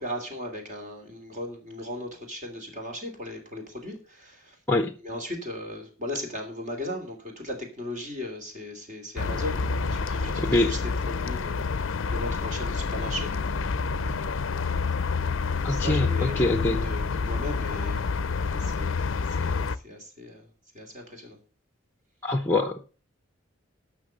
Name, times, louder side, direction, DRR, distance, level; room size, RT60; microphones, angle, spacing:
voice 1, 0.0-4.6 5.0-13.3 13.9-14.4 15.3-18.1 18.4-20.5 20.7-21.4, left 1 dB, 35° right, 2.9 m, -37 dB
sound 1, 9.2-19.8, left 4 dB, 70° left, 0.5 m, -28 dB
voice 2, 10.4-10.7 15.6-16.9 22.2-22.9, left 2 dB, 10° left, 0.7 m, -24 dB
12.0 x 6.1 x 6.3 m
head